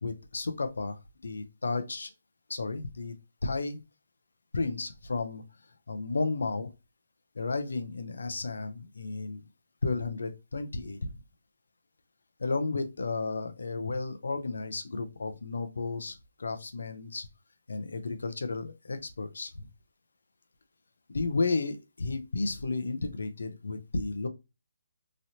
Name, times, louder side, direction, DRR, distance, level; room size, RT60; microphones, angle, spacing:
voice 1, 0.0-2.1 2.5-3.1 3.4-3.8 4.5-5.4 5.9-6.7 7.3-9.4 9.8-11.1 12.4-17.3 17.7-19.7 21.1-24.3, left 3 dB, 80° left, 0.6 m, -33 dB
3.1 x 2.8 x 2.6 m
hypercardioid pair, 175°, 0 cm